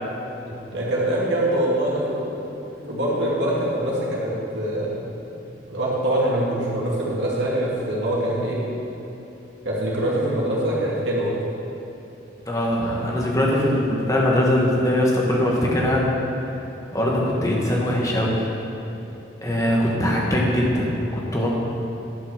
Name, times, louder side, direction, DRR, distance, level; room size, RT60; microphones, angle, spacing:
voice 1, 0.4-2.4 2.8-5.0 5.6-8.6 9.6-11.3, right 1 dB, 70° right, -5 dB, 2.3 m, -24 dB
voice 2, 12.5-16.1 16.9-18.5 19.4-21.5, left 1 dB, 20° left, -3 dB, 1.4 m, -21 dB
11.0 x 5.6 x 6.3 m, 3.0 s
head